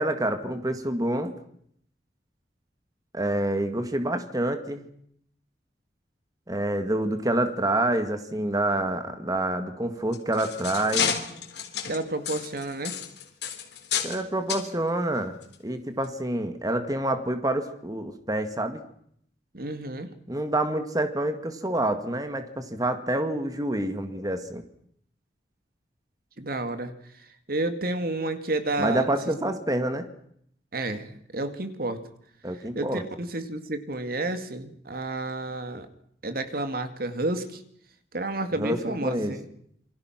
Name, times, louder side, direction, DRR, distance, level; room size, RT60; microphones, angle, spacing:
voice 1, 0.0-1.4 3.1-4.9 6.5-11.2 14.0-15.4 15.6-18.8 20.3-24.6 28.8-30.1 32.4-33.0 38.6-39.4, right 1 dB, 20° right, 8 dB, 2.0 m, -27 dB
sound 1, 10.0-14.2 14.5-14.7 15.4-15.5 16.0-16.1, left 8 dB, 75° left, 4.0 m, -31 dB
voice 2, 11.9-13.0 19.5-20.1 26.4-26.9 27.5-29.2 30.7-32.0 32.7-35.9 36.2-37.6 38.1-39.5, right 2 dB, 55° right, 9 dB, 2.2 m, -30 dB
28.0 x 25.0 x 6.0 m, 0.69 s
head